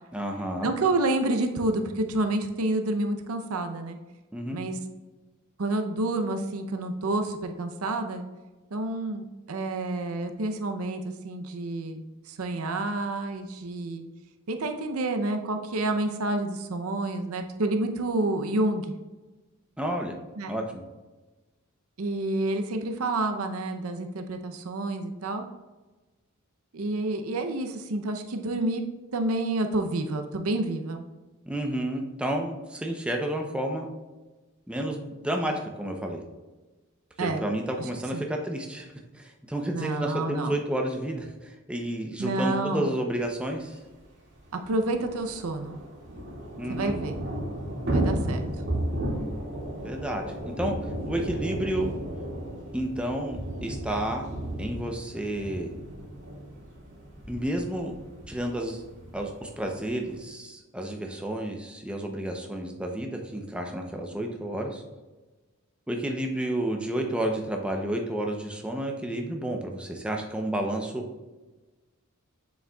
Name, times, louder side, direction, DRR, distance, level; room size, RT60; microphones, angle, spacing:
voice 1, 0.1-0.7 4.3-4.6 19.8-20.2 20.5-20.8 31.5-33.9 34.7-36.2 37.2-38.9 39.1-43.7 46.6-47.0 49.8-50.7 51.0-51.9 52.7-54.3 54.6-55.7 57.3-57.9 58.3-58.8 59.1-64.8 65.9-71.0, right 1 dB, 5° right, 2 dB, 0.6 m, -31 dB
voice 2, 0.6-4.0 4.5-4.8 5.6-8.2 8.7-14.1 14.5-18.9 20.4-20.5 22.0-25.4 26.7-28.8 29.1-31.1 37.2-37.4 38.1-38.3 39.7-40.5 42.2-42.9 44.5-45.8 46.7-47.2 47.9-48.4, right 2 dB, 80° right, 6 dB, 0.6 m, -29 dB
Thunder / Rain, 43.6-43.7 43.9-44.0 44.3-60.2, right 1 dB, 60° right, 2.0 m, -34 dB
7.1 x 6.3 x 2.3 m, 1.2 s
head